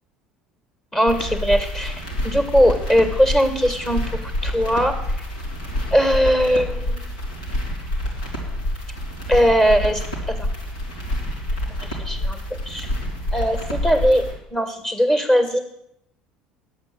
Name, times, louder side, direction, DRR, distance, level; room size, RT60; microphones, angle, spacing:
voice 1, 0.9-4.0 4.4-5.0 5.9-7.1 9.3-10.0 10.4-10.5 12.0-12.9 13.3-14.2 14.5-15.6, equal, 15° left, 7 dB, 2.3 m, -19 dB
sound 1, 1.1-14.3, left 1 dB, 75° left, 2.9 m, -27 dB
10.5 x 8.2 x 7.9 m, 0.77 s
figure-of-eight pair, 65°, 4 cm